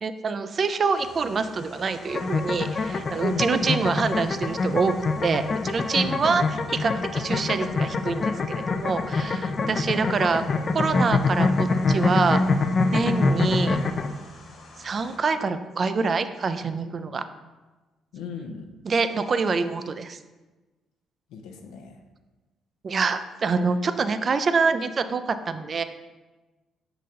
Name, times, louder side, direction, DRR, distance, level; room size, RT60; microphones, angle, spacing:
voice 1, 0.0-4.9 5.2-10.4 10.7-12.4 12.9-13.8 14.8-17.2 18.8-20.2 22.8-25.8, right 4 dB, 45° right, 11 dB, 0.4 m, -26 dB
sound 1, 0.9-15.2, left 2 dB, 60° left, 1.4 m, -49 dB
sound 2, 2.1-14.1, left 3 dB, 45° left, 0.4 m, -25 dB
voice 2, 9.6-10.0 18.1-18.7 21.3-22.0, left 5 dB, 85° left, 4 dB, 0.7 m, -38 dB
6.2 x 3.9 x 4.2 m, 1.2 s
supercardioid pair, 65°, 0 cm